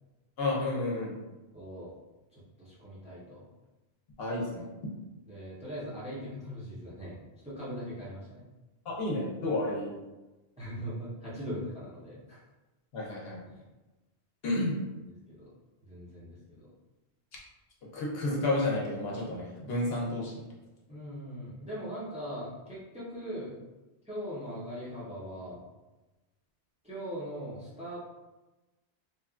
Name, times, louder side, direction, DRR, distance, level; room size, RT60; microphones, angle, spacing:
voice 1, 0.4-1.1 4.2-4.7 8.9-9.9 12.9-13.4 14.4-14.7 17.9-20.3, left 2 dB, 70° left, -3 dB, 0.9 m, -31 dB
voice 2, 1.5-1.9 2.3-3.4 5.3-8.4 10.6-12.4 13.5-13.6 15.3-15.5 15.9-16.7 20.9-23.5 24.0-25.6 26.8-28.1, equal, 10° right, -8 dB, 0.6 m, -40 dB
2.9 x 2.2 x 2.4 m, 1.1 s
omnidirectional pair, 1.1 m